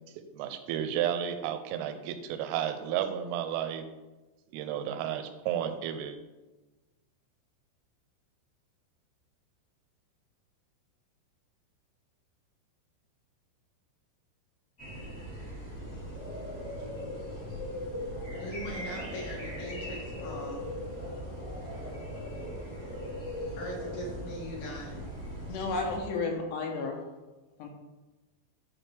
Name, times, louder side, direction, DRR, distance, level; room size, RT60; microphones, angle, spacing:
voice 1, 0.3-3.8 4.5-6.2, right 10 dB, 90° right, 8 dB, 3.2 m, -32 dB
sound 1, 14.8-26.0, equal, 25° left, 1.5 m, -39 dB
voice 2, 18.4-20.7 23.6-25.1, equal, 60° left, -3 dB, 2.6 m, -40 dB
voice 3, 25.5-27.0 27.6-27.7, left 3 dB, 75° left, 2 dB, 2.7 m, -32 dB
10.5 x 4.4 x 3.3 m, 1.1 s
omnidirectional pair, 5.6 m